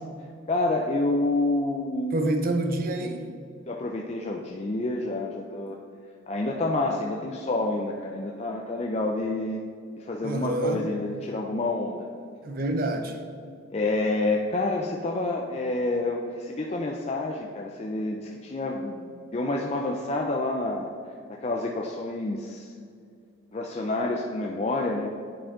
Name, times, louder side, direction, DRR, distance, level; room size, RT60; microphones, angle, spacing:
voice 1, 0.5-2.2 3.7-5.8 6.3-9.6 10.0-12.1 13.7-20.9 21.3-22.7 23.5-25.1, left 2 dB, 30° left, 0 dB, 0.4 m, -28 dB
voice 2, 2.1-3.3 10.2-10.8 12.4-13.2, right 1 dB, 45° right, 5 dB, 0.6 m, -27 dB
10.0 x 4.4 x 3.7 m, 2.2 s
head